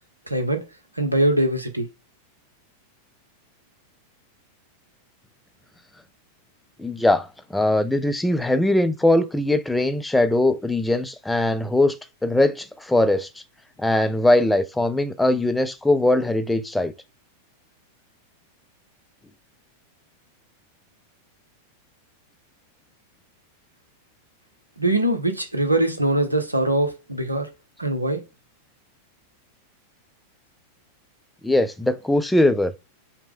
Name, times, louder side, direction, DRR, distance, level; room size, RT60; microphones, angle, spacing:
voice 1, 0.3-0.6 1.0-1.9 24.8-27.5 27.8-28.2, right 1 dB, 85° right, 0.8 m, -22 dB
voice 2, 6.8-12.0 12.2-13.3 13.8-16.9 31.4-32.7, left 1 dB, 5° left, 0.4 m, -21 dB
5.7 x 2.2 x 3.6 m
figure-of-eight pair, 90°, 0 cm